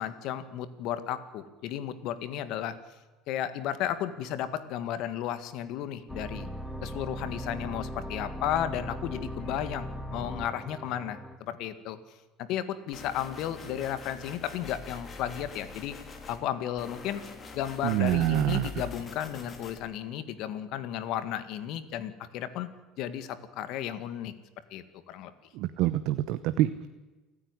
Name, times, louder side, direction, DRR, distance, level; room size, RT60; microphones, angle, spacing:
voice 1, 0.0-2.8 3.3-6.5 6.8-12.0 12.4-15.9 16.3-17.2 17.5-22.7 23.0-24.3 24.7-25.3, left 10 dB, 60° left, 12 dB, 1.9 m, -34 dB
sound 1, 6.1-11.4, equal, ahead, 1.7 m, -38 dB
sound 2, 12.9-16.4 16.8-19.8, left 4 dB, 30° left, 3.3 m, -44 dB
voice 2, 17.8-18.7 25.5-26.9, right 14 dB, 65° right, 12 dB, 0.9 m, -26 dB
29.0 x 9.9 x 9.9 m, 1.2 s
cardioid pair, 125°, 0 cm